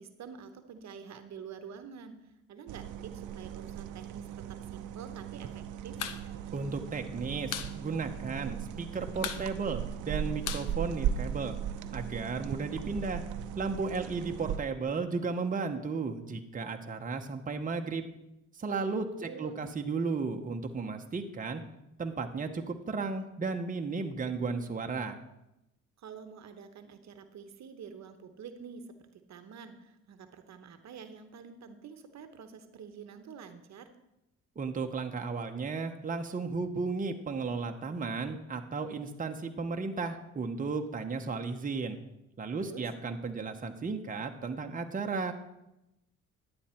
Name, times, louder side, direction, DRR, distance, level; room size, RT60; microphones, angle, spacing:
voice 1, 0.0-6.0 18.7-19.6 26.0-33.9 42.6-42.8, right 6 dB, 65° right, 8 dB, 1.0 m, -48 dB
sound 1, 2.7-14.6, right 9 dB, 80° right, 0.7 m, -37 dB
sound 2, 5.9-6.2 6.5-6.6 6.9-7.7 8.1-8.2 8.4-8.8 9.2-11.5, left 9 dB, 85° left, 0.8 m, -38 dB
voice 2, 6.5-11.5 11.9-13.2 13.6-18.0 18.5-21.6 22.0-25.2 34.6-42.0 42.4-45.3, right 4 dB, 25° right, 4 dB, 1.0 m, -34 dB
11.5 x 8.7 x 4.4 m, 0.89 s
cardioid pair, 90°, 30 cm